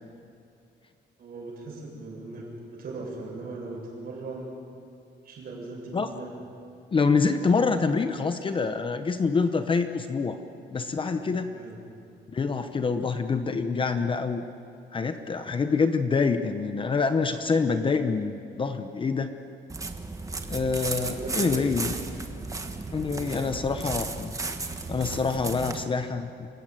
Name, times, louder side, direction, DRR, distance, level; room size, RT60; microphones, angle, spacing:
voice 1, 1.2-4.5 5.2-6.3 11.5-11.8 21.0-21.6 22.2-22.5 23.0-23.6, right 3 dB, 50° right, -2 dB, 7.7 m, -39 dB
voice 2, 6.9-10.4 10.7-11.5 12.3-14.4 14.9-19.3 20.5-21.9 22.9-24.3 24.9-26.5, left 4 dB, 25° left, 8 dB, 0.8 m, -26 dB
sound 1, 19.7-25.8, right 3 dB, 15° right, 1.2 m, -34 dB
27.0 x 15.5 x 9.3 m, 2.5 s
cardioid pair, 170°, 19 cm